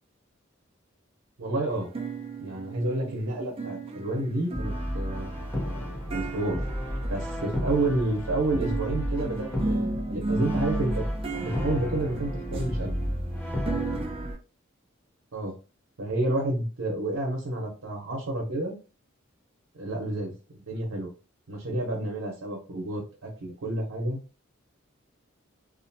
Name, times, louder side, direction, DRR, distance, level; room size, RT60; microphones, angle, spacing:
voice 1, 1.4-1.9 2.4-5.5 6.1-6.6 7.1-11.0 11.3-12.9 15.3-15.6 16.0-18.8 19.7-21.1 21.5-24.2, right 2 dB, 80° right, 0 dB, 0.7 m, -30 dB
sound 1, 1.7-8.1 8.6-14.4, right 3 dB, 30° right, 0.4 m, -35 dB
Brass instrument, 4.5-14.3, equal, 10° left, 0.7 m, -32 dB
2.5 x 2.1 x 2.6 m, 0.33 s
head